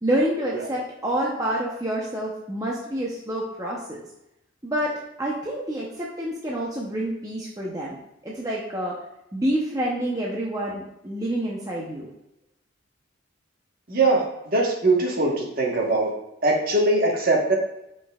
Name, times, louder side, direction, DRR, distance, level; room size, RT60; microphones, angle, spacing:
voice 1, 0.0-4.0 4.6-4.9 5.2-8.0 8.2-9.0 9.3-12.1, right 1 dB, 15° right, -4 dB, 0.7 m, -27 dB
voice 2, 13.9-14.2 14.5-16.1 16.4-17.5, right 2 dB, 45° right, -1 dB, 1.2 m, -21 dB
8.6 x 5.4 x 2.4 m, 0.85 s
head